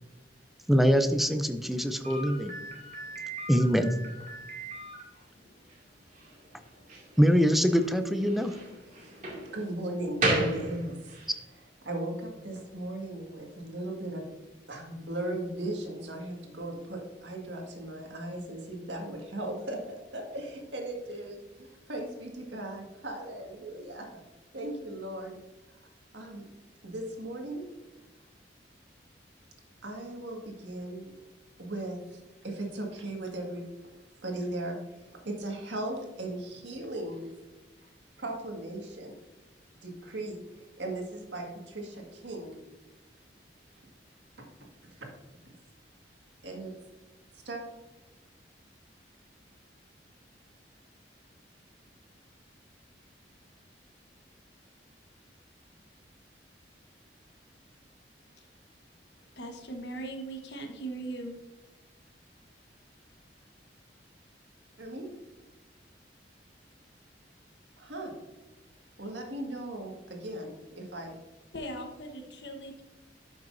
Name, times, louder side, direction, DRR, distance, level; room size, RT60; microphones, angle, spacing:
voice 1, 0.7-2.5 3.5-3.9 7.2-8.5, equal, ahead, 8 dB, 0.5 m, -23 dB
Slam, 2.0-11.4, right 2 dB, 45° right, 2.4 m, -36 dB
voice 2, 9.5-11.2 11.8-14.2 14.7-19.8 20.1-24.1 24.5-25.4 26.1-26.4 26.8-27.6 29.8-31.0 31.6-33.7 34.2-34.8 35.1-37.3 38.2-39.1 39.8-40.4 40.8-42.5 44.8-45.1 46.4-46.7 47.5-47.6 64.8-65.1 67.8-68.2 69.0-71.2, right 1 dB, 80° right, 1 dB, 1.8 m, -37 dB
voice 3, 59.4-61.3 71.5-72.8, right 2 dB, 65° left, 3 dB, 1.2 m, -39 dB
11.5 x 6.0 x 2.6 m, 1.1 s
head